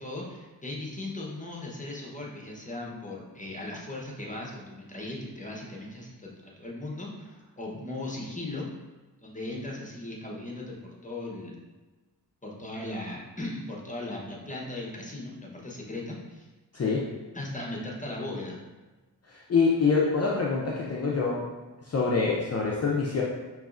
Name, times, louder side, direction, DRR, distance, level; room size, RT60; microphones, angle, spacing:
voice 1, 0.0-8.7 9.2-11.5 12.4-16.5 17.3-18.6, left 2 dB, 20° left, -2 dB, 0.9 m, -38 dB
voice 2, 16.7-17.1 19.3-21.4 21.8-23.2, left 4 dB, 40° left, -3 dB, 0.5 m, -25 dB
5.3 x 3.0 x 2.5 m, 1.2 s
wide cardioid pair, 70°, 40 cm